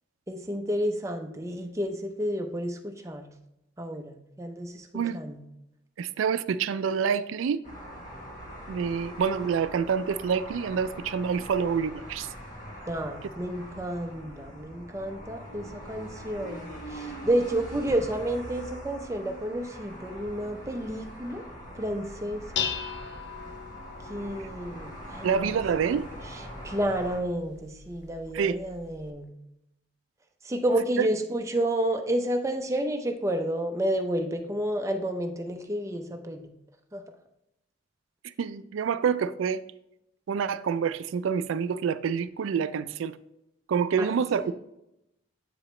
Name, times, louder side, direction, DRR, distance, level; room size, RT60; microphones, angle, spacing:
voice 1, 0.3-3.3 3.8-5.4 12.9-21.4 21.8-22.6 24.1-25.6 26.3-29.3 30.4-36.5 36.9-37.0 44.0-44.1 44.5-44.6, right 1 dB, 15° right, 0.5 m, -30 dB
voice 2, 6.0-7.6 8.7-12.3 25.2-26.1 28.3-28.6 31.0-31.1 38.4-39.6 40.3-43.2 43.7-44.5, right 6 dB, 85° right, 0.3 m, -27 dB
sound 1, 7.6-27.2, right 1 dB, 40° left, 1.3 m, -42 dB
Dishes pots and pans, 22.0-29.1, left 7 dB, 60° left, 0.5 m, -39 dB
7.6 x 4.9 x 3.1 m
head